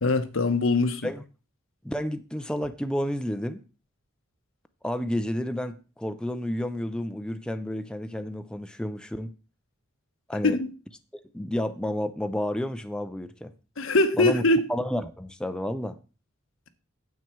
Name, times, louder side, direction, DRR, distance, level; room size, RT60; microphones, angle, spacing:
voice 1, 0.0-1.1 10.4-10.7 13.8-14.7, left 2 dB, 70° left, 1.0 m, -22 dB
voice 2, 1.8-3.6 4.8-9.3 10.3-10.6 11.3-13.5 14.2-14.4 14.7-16.0, left 1 dB, 5° left, 0.5 m, -30 dB
9.4 x 7.7 x 4.5 m
head